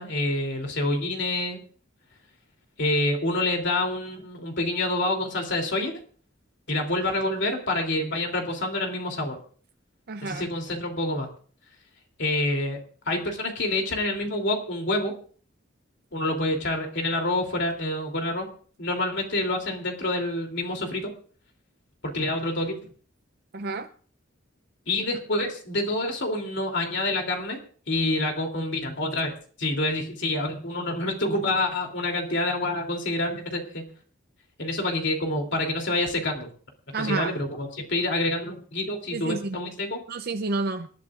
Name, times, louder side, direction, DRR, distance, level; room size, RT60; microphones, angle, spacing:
voice 1, 0.0-1.6 2.8-5.9 6.7-9.4 10.2-11.3 12.2-12.8 13.1-15.1 16.1-18.5 18.8-21.1 22.1-22.8 24.9-27.6 27.9-29.3 29.6-33.8 34.6-36.5 37.0-40.0, left 2 dB, 65° left, 3.2 m, -27 dB
voice 2, 10.1-10.4 23.5-23.9 36.9-37.4 39.1-39.6 40.1-40.9, right 3 dB, 50° right, 0.6 m, -29 dB
27.0 x 11.5 x 2.5 m
head